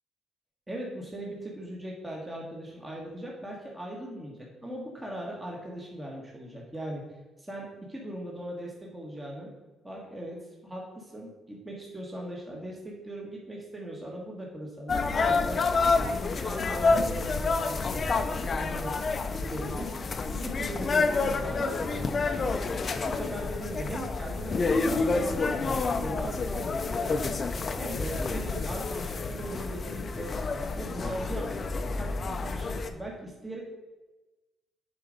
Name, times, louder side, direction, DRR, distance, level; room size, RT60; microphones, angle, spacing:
voice 1, 0.7-7.0 7.4-9.5 9.8-15.6 15.9-18.9 19.3-19.9 20.3-22.5 23.0-27.3 27.8-30.3 30.7-33.6, right 1 dB, 15° right, -2 dB, 1.5 m, -39 dB
sound 1, 14.9-32.9, left 4 dB, 40° left, 0.6 m, -29 dB
7.1 x 3.9 x 5.1 m, 1.1 s
cardioid pair, 90°, 0 cm